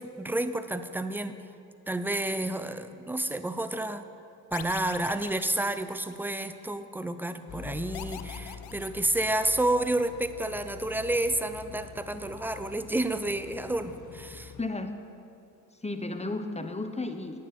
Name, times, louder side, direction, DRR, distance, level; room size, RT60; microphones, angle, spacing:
voice 1, 0.0-1.4 1.9-4.0 4.5-14.5, right 1 dB, 5° right, 11 dB, 0.6 m, -30 dB
sound 1, 4.5-6.5 7.9-9.7, left 12 dB, 85° left, 0.6 m, -44 dB
sound 2, 7.5-14.6, left 8 dB, 45° left, 0.7 m, -46 dB
voice 2, 14.6-14.9 15.8-17.4, left 2 dB, 15° left, 7 dB, 1.0 m, -33 dB
9.7 x 9.1 x 6.0 m, 2.5 s
supercardioid pair, 55°, 41 cm